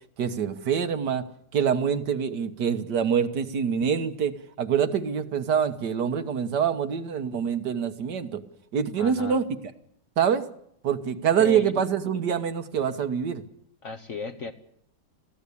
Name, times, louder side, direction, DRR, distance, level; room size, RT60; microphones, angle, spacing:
voice 1, 0.2-1.2 1.5-4.3 4.6-8.4 8.7-9.4 10.2-10.4 10.8-13.4, right 7 dB, 65° right, 8 dB, 1.7 m, -25 dB
voice 2, 9.0-9.4 11.4-11.7 13.8-14.5, left 4 dB, 45° left, 6 dB, 1.2 m, -35 dB
21.5 x 15.5 x 8.5 m, 0.72 s
omnidirectional pair, 2.0 m